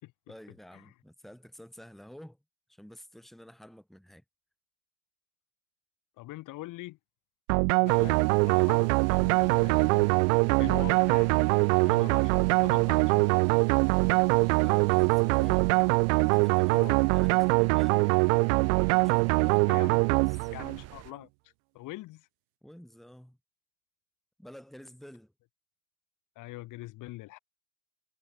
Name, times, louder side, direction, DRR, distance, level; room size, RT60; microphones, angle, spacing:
voice 1, 0.3-2.4 2.7-4.2 14.6-15.8 16.2-18.3 19.0-19.7 20.0-20.5 22.6-23.4 24.4-25.3, equal, ahead, 5.9 m, -50 dB
voice 2, 6.2-7.0 7.8-10.1 10.6-13.4 16.7-17.0 19.7-20.0 20.5-22.3 26.3-27.4, left 18 dB, 40° left, 3.2 m, -43 dB
sound 1, 7.5-20.8, right 36 dB, 60° right, 0.5 m, -23 dB
sound 2, 7.9-21.1, right 14 dB, 35° right, 2.2 m, -47 dB
cardioid pair, 170°, 45 cm